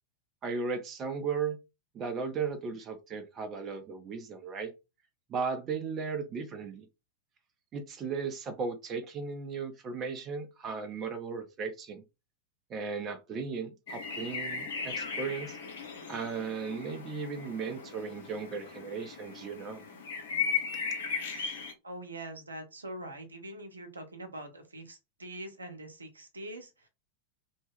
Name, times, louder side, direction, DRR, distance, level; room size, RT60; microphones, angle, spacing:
voice 1, 0.4-1.6 1.9-4.7 5.3-6.9 7.7-12.0 12.7-15.6 16.1-19.8, right 5 dB, 30° right, 0.6 m, -36 dB
sound 1, 13.9-21.7, left 5 dB, 55° left, 0.7 m, -37 dB
voice 2, 21.8-26.9, right 1 dB, 80° right, 0.7 m, -43 dB
2.9 x 2.1 x 3.4 m
figure-of-eight pair, 90°, 0 cm